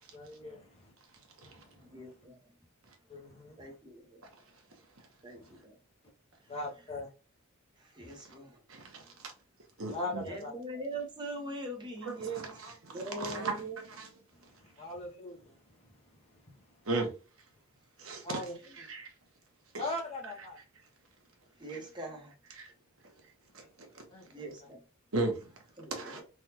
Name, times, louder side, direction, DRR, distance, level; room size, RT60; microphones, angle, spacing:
voice 1, 0.1-0.9 1.4-2.0 3.1-3.7 5.4-5.6 6.5-7.1 8.0-8.1 9.9-10.5 14.8-15.6 16.4-16.6 18.2-18.5 19.8-20.6 24.1-24.4, left 2 dB, 30° left, 0.7 m, -40 dB
voice 2, 1.8-2.4 3.6-4.2 5.2-5.8 6.4-6.5 7.8-8.6 10.2-12.5 12.9-13.8 21.6-22.3 24.3-24.8 25.8-26.2, right 2 dB, 20° right, 0.8 m, -42 dB
voice 3, 8.7-9.3 9.8-10.3 12.0-12.1 12.6-13.6 14.0-14.1 16.9-17.1 18.0-18.4 18.8-19.1 19.7-19.8 21.7-21.8 22.6-22.7 23.5-23.6 23.9-24.0 25.1-25.5 25.9-26.2, right 2 dB, 75° right, 0.9 m, -36 dB
3.4 x 2.3 x 2.8 m
head